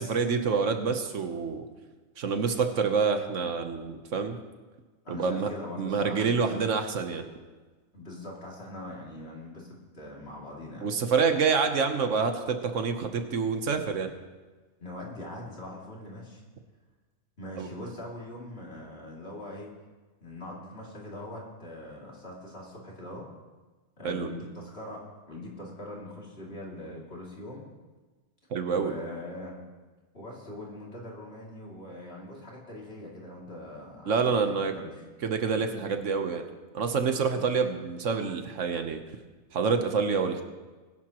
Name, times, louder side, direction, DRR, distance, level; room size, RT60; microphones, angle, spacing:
voice 1, 0.0-1.6 2.2-4.4 5.1-5.5 5.8-7.3 10.8-14.1 17.6-17.7 24.0-24.3 28.5-28.9 34.1-34.7 35.2-36.4 36.7-39.0 39.5-40.4, right 5 dB, 60° right, 7 dB, 1.3 m, -27 dB
voice 2, 5.0-6.5 7.9-10.9 14.8-16.4 17.4-19.7 20.2-23.3 24.0-27.6 28.7-29.5 30.1-35.0 37.3-37.4, left 1 dB, 45° left, -4 dB, 3.0 m, -42 dB
21.0 x 11.0 x 3.0 m, 1.3 s
omnidirectional pair, 1.5 m